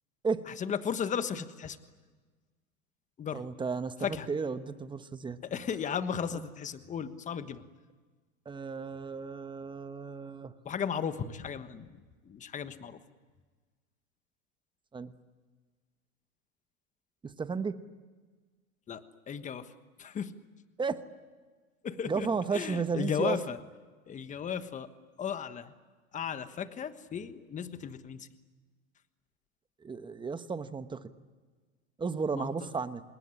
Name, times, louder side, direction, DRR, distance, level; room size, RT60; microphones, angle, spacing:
voice 1, 0.6-1.8 3.2-3.4 4.0-4.3 5.4-7.6 10.6-11.9 12.3-13.0 18.9-19.0 19.3-19.7 20.0-20.3 21.8-22.3 22.5-23.6 24.1-24.9 25.2-25.7 26.1-28.3 32.3-32.5, left 7 dB, 15° left, 11 dB, 1.3 m, -35 dB
voice 2, 3.3-5.4 6.3-6.4 8.5-10.5 14.9-15.1 17.2-17.8 20.8-21.0 22.0-23.4 29.8-31.1 32.0-33.0, right 5 dB, 10° right, 11 dB, 1.1 m, -33 dB
27.5 x 21.0 x 9.9 m, 1.4 s
hypercardioid pair, 130°, 43 cm